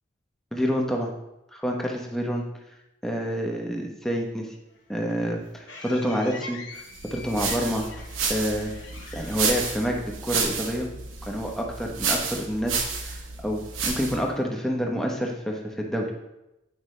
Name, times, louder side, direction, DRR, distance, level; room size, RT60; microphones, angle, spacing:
voice 1, 0.5-1.1 1.5-2.4 3.0-4.5 4.9-7.8 8.3-8.7 9.1-10.9 11.2-16.1, equal, ahead, 0 dB, 0.9 m, -28 dB
sound 1, 4.7-10.5, left 3 dB, 65° left, 1.0 m, -44 dB
sound 2, 6.9-14.3, right 5 dB, 85° right, 1.0 m, -31 dB
9.4 x 5.2 x 3.2 m, 0.94 s
head